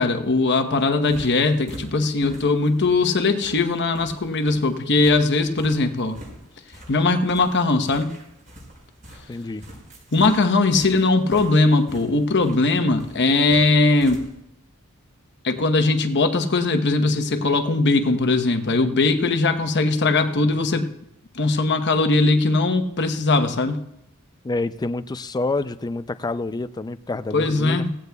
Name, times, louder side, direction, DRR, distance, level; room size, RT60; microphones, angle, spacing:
voice 1, 0.0-6.2 6.9-8.1 10.1-14.3 15.4-20.9 21.3-23.8 27.3-28.0, left 3 dB, 55° left, 7 dB, 1.0 m, -20 dB
sound 1, 0.9-14.3, equal, 40° right, 5.8 m, -44 dB
voice 2, 9.3-9.6 24.4-27.9, left 2 dB, 20° left, 13 dB, 0.4 m, -28 dB
17.5 x 16.0 x 2.3 m, 0.80 s
head